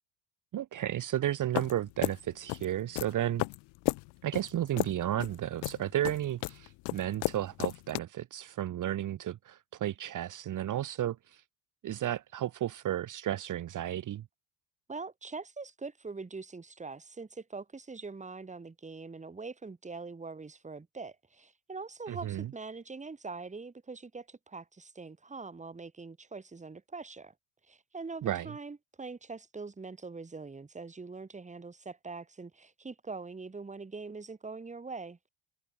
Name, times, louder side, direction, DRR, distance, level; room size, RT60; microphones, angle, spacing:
voice 1, 0.5-3.4 4.2-11.4 11.8-14.2 22.1-22.5 28.2-28.5, right 12 dB, 45° right, 1.5 m, -33 dB
sound 1, 1.6-8.0, left 28 dB, 70° left, 1.1 m, -34 dB
voice 2, 14.9-27.3 27.7-35.2, right 4 dB, 15° right, 2.4 m, -43 dB
supercardioid pair, 80°, 42 cm